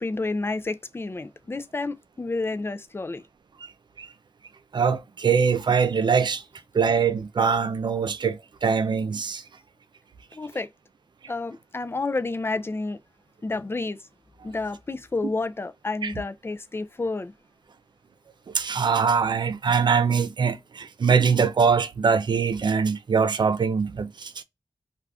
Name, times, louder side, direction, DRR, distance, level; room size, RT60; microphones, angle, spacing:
voice 1, 0.0-3.2 10.3-10.7 11.3-13.0 13.4-14.0 14.4-17.3, left 3 dB, 25° left, 0.4 m, -30 dB
voice 2, 4.7-6.4 6.7-9.4 16.0-16.1 18.5-24.4, right 6 dB, 55° right, 0.4 m, -23 dB
2.4 x 2.4 x 3.3 m
cardioid pair, 60°, 9 cm